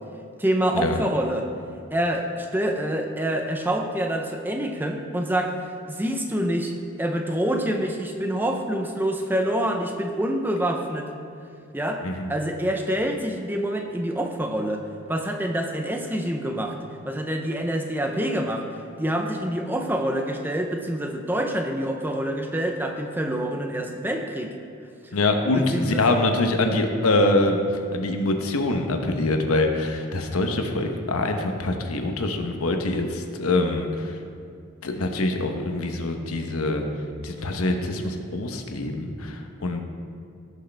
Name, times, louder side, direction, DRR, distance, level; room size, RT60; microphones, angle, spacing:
voice 1, 0.4-1.5 1.9-5.6 5.9-11.1 11.7-12.0 12.3-16.8 17.1-18.7 19.0-24.6 25.5-26.1, right 1 dB, 10° right, 3 dB, 0.6 m, -26 dB
voice 2, 25.1-34.2 34.8-36.8 37.2-39.8, left 2 dB, 85° left, 4 dB, 1.0 m, -24 dB
17.0 x 6.5 x 3.4 m, 2.3 s
head